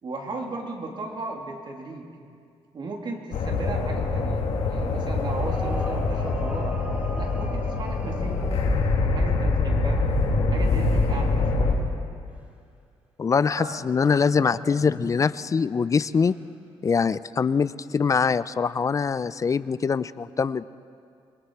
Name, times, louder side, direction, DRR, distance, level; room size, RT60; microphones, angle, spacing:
voice 1, 0.0-2.1 2.7-4.4 4.7-6.8 7.2-8.5 9.2-10.1 10.5-11.8 13.5-13.8 14.2-14.9, right 3 dB, 45° right, 1 dB, 2.8 m, -36 dB
sound 1, 3.3-11.7, left 3 dB, 80° left, 2.5 m, -24 dB
sound 2, 5.2-9.0 10.3-10.7 12.3-12.5 16.3-16.6 17.9-18.0, equal, 15° right, 2.7 m, -40 dB
voice 2, 13.2-16.4 16.8-20.6, left 5 dB, 30° left, 16 dB, 0.4 m, -23 dB
26.5 x 21.5 x 4.7 m, 2.3 s
cardioid pair, 115°, 10 cm